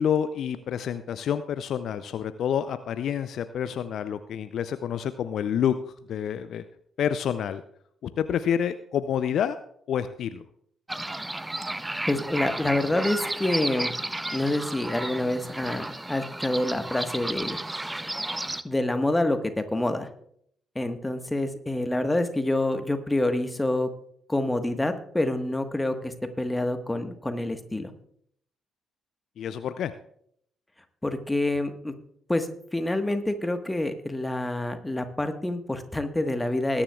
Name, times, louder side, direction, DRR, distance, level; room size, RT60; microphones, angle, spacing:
voice 1, 0.0-5.7 6.1-6.6 7.0-7.6 8.2-9.6 9.9-10.4 29.4-29.9, left 8 dB, 60° left, 12 dB, 0.5 m, -28 dB
sound 1, 10.9-18.6, right 1 dB, 15° right, 0.6 m, -33 dB
voice 2, 12.1-13.9 14.3-17.6 18.6-20.1 20.7-23.9 24.3-27.9 31.0-31.9 32.3-32.5 32.7-36.8, left 1 dB, 15° left, 8 dB, 1.4 m, -27 dB
20.5 x 10.0 x 2.4 m, 0.67 s
figure-of-eight pair, 40°, 0 cm